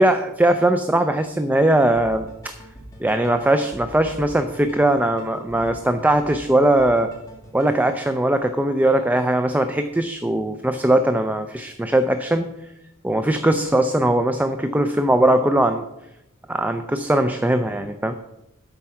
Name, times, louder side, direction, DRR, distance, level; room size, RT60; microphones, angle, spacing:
voice 1, 0.0-2.5 3.0-7.1 7.5-12.5 13.0-15.8 16.5-18.1, right 1 dB, 10° right, 8 dB, 0.4 m, -20 dB
sound 1, 1.9-7.8, equal, 15° left, 2.3 m, -43 dB
11.5 x 4.7 x 5.7 m, 0.90 s
head